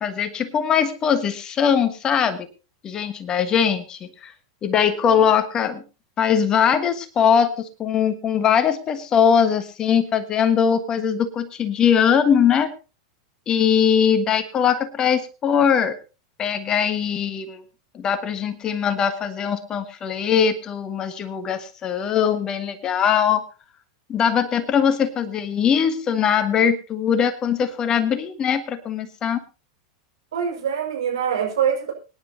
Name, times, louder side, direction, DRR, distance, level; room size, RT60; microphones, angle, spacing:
voice 1, 0.0-2.5 2.8-4.3 4.6-5.8 6.2-12.7 13.5-16.0 16.4-17.6 17.9-23.4 24.1-29.4, left 7 dB, 25° left, 12 dB, 1.4 m, -21 dB
voice 2, 30.3-31.9, right 8 dB, 65° right, 2 dB, 5.3 m, -24 dB
24.5 x 10.5 x 2.8 m, 0.31 s
figure-of-eight pair, 90°, 3 cm